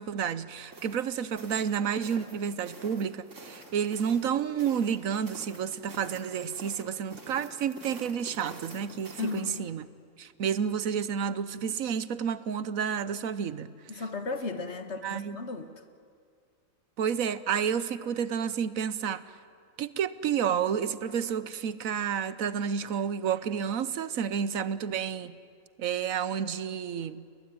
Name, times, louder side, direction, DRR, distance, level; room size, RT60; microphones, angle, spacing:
voice 1, 0.0-9.9 10.2-14.0 15.0-15.4 17.0-19.2 19.8-25.4 25.8-27.2, right 7 dB, 75° right, 15 dB, 1.3 m, -30 dB
sound 1, 0.7-9.6, right 2 dB, 60° right, 3.2 m, -48 dB
voice 2, 9.2-9.7 13.9-15.7, left 3 dB, 55° left, 8 dB, 1.8 m, -35 dB
30.0 x 21.0 x 9.4 m, 2.2 s
omnidirectional pair, 1.4 m